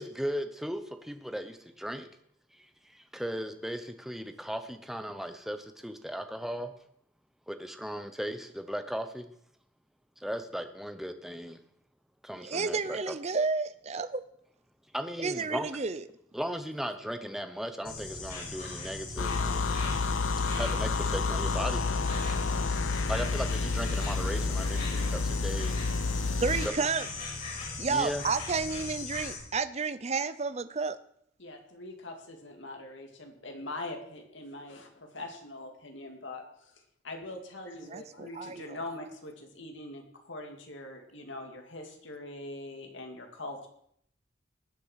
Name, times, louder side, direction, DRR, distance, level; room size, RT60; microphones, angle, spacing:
voice 1, 0.0-2.1 2.5-6.7 7.5-9.3 10.2-11.6 12.2-13.1 14.9-15.7 16.3-19.8 20.5-21.9 22.3-22.5 23.1-25.7 27.9-28.2, equal, ahead, 8 dB, 0.9 m, -37 dB
voice 2, 12.4-14.2 15.2-16.0 26.4-27.1 27.8-31.0 37.9-38.8, right 4 dB, 35° right, 14 dB, 0.6 m, -31 dB
Insect, 17.8-29.4, left 3 dB, 50° left, 5.9 m, -39 dB
sound 1, 19.2-26.7, left 4 dB, 85° left, 0.7 m, -30 dB
voice 3, 31.4-43.7, left 2 dB, 70° left, 3 dB, 2.7 m, -43 dB
19.0 x 7.6 x 5.8 m, 0.70 s
head